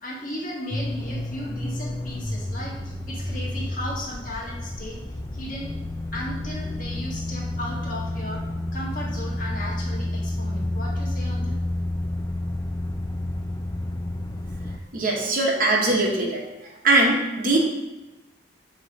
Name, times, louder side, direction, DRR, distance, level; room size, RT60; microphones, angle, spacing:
voice 1, 0.0-5.0 5.3-5.7 6.1-8.4 8.7-11.6, left 1 dB, 45° left, -4 dB, 1.6 m, -35 dB
sound 1, 0.7-14.8, left 1 dB, 20° left, 0.4 m, -30 dB
voice 2, 14.9-16.4 16.8-17.6, right 2 dB, 45° right, -1 dB, 1.1 m, -21 dB
7.9 x 3.2 x 5.2 m, 1.0 s
head